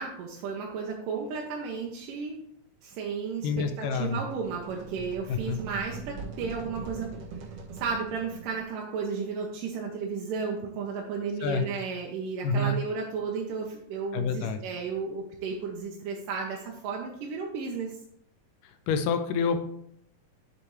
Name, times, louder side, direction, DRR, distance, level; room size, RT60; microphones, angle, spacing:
voice 1, 0.0-2.4 2.8-3.5 3.8-7.1 7.7-18.0, right 5 dB, 75° right, -1 dB, 2.4 m, -33 dB
voice 2, 3.4-4.2 5.3-5.6 11.4-11.7 12.4-12.8 14.1-14.6 18.6-19.6, left 4 dB, 80° left, 7 dB, 2.2 m, -28 dB
sound 1, 3.8-8.7, right 4 dB, 60° right, 1.9 m, -42 dB
8.4 x 6.7 x 3.1 m, 0.70 s
omnidirectional pair, 4.0 m